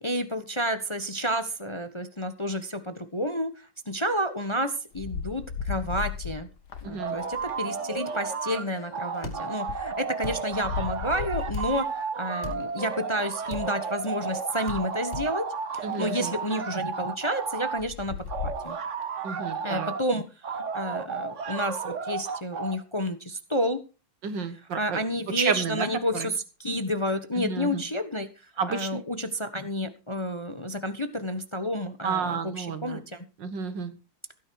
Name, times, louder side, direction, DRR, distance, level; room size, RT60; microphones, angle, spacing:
voice 1, 0.0-6.5 6.8-11.9 12.2-15.5 15.7-18.2 18.4-18.8 19.6-20.2 20.7-23.8 24.8-28.3 28.7-33.2, equal, 20° left, 9 dB, 1.1 m, -30 dB
sound 1, 4.9-9.9 10.3-11.8 12.7-13.5 14.2-14.6 15.1-15.2 15.8-16.1 17.5-17.6 17.8-18.7, left 6 dB, 60° left, 2.1 m, -36 dB
voice 2, 6.8-7.2 15.8-16.3 19.2-19.9 24.2-25.0 25.4-25.9 26.1-26.3 27.4-27.8 28.6-29.0 32.0-33.0 33.4-33.9, right 5 dB, 70° right, 11 dB, 2.1 m, -31 dB
sound 2, 7.0-8.6 8.9-17.8 18.3-20.0 20.4-22.8, right 5 dB, 45° right, 1.4 m, -33 dB
sound 3, 9.2-9.4 10.2-10.4 11.5-11.7 12.4-12.6 13.5-13.7 14.7-14.8 15.1-15.3, left 3 dB, 35° left, 3.7 m, -35 dB
16.0 x 9.9 x 4.7 m, 0.32 s
omnidirectional pair, 2.1 m